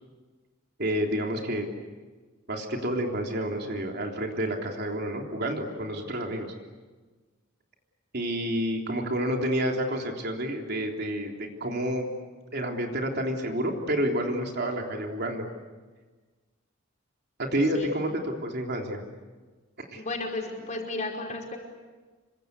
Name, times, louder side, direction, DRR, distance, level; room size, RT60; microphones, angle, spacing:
voice 1, 0.8-1.7 2.5-6.5 8.1-12.1 12.5-15.5 17.4-19.0 19.8-20.0, equal, 50° right, 1 dB, 3.6 m, -29 dB
voice 2, 20.0-21.6, left 2 dB, 35° left, 1 dB, 5.3 m, -33 dB
27.5 x 25.0 x 8.4 m, 1.3 s
head